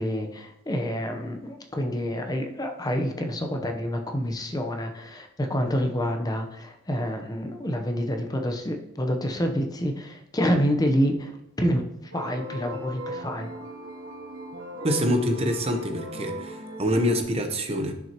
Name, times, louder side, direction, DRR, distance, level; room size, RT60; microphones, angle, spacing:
voice 1, 0.0-11.3 11.6-11.9 12.1-13.5, equal, 20° left, 4 dB, 0.8 m, -27 dB
sound 1, 12.1-17.2, equal, 90° right, 1.1 m, -38 dB
voice 2, 14.8-17.9, equal, 30° right, 5 dB, 0.8 m, -25 dB
10.5 x 6.0 x 2.9 m, 0.83 s
head